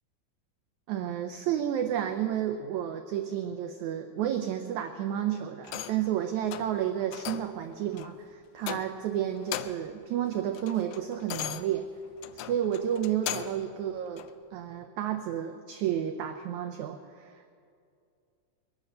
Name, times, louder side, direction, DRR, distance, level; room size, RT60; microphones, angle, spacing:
voice 1, 0.9-11.9 12.4-17.5, right 10 dB, 85° right, 7 dB, 1.6 m, -31 dB
sound 1, 5.6-6.1 6.5-6.8 7.1-7.6 8.0-8.2 8.6-9.1 9.4-9.9 10.3-13.7 14.2-14.3, left 12 dB, 85° left, 2.4 m, -38 dB
21.5 x 9.7 x 6.6 m, 2.4 s
omnidirectional pair, 4.1 m